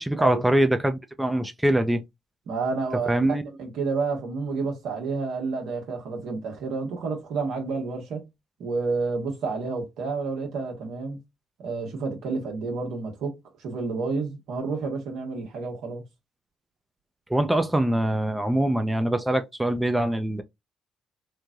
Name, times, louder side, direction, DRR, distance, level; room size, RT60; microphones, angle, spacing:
voice 1, 0.0-2.0 3.1-3.4 17.3-20.4, right 1 dB, 10° right, 0.5 m, -23 dB
voice 2, 2.5-8.3 8.6-11.2 11.6-16.0, right 4 dB, 80° right, 1.2 m, -30 dB
3.1 x 2.2 x 2.5 m
hypercardioid pair, 50°, 0 cm